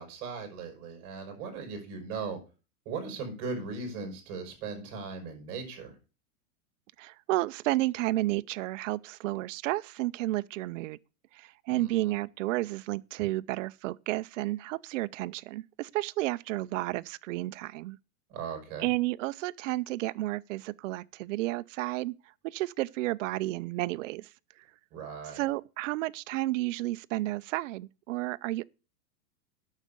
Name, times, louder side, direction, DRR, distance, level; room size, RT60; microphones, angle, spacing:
voice 1, 0.0-2.4 2.8-6.0 11.7-12.1 18.3-18.9 24.9-25.4, right 4 dB, 40° right, 4.8 m, -38 dB
voice 2, 7.0-11.0 11.7-18.0 18.8-22.1 22.4-24.3 25.3-28.6, right 17 dB, 55° right, 0.5 m, -31 dB
9.1 x 6.3 x 6.8 m
supercardioid pair, 160°, 45 cm